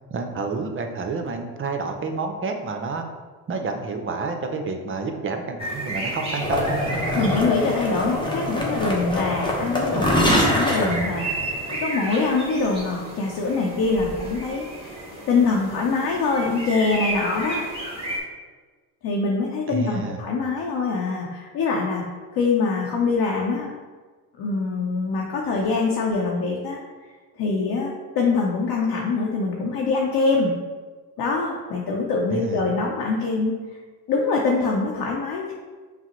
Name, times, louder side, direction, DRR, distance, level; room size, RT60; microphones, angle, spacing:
voice 1, 0.1-3.0 3.5-6.8 19.7-20.2 32.3-32.6, right 4 dB, 30° right, 5 dB, 0.5 m, -29 dB
sound 1, 5.6-18.2, right 1 dB, 10° right, 1.1 m, -33 dB
sound 2, 6.4-11.7, left 1 dB, 10° left, 0.9 m, -24 dB
voice 2, 7.1-11.3 11.8-15.0 15.3-17.7 19.0-22.0 22.3-23.7 24.4-26.8 27.4-30.5 31.2-33.5 34.1-35.5, left 4 dB, 50° left, -2 dB, 0.7 m, -24 dB
5.6 x 2.0 x 3.0 m, 1.4 s
supercardioid pair, 75°, 46 cm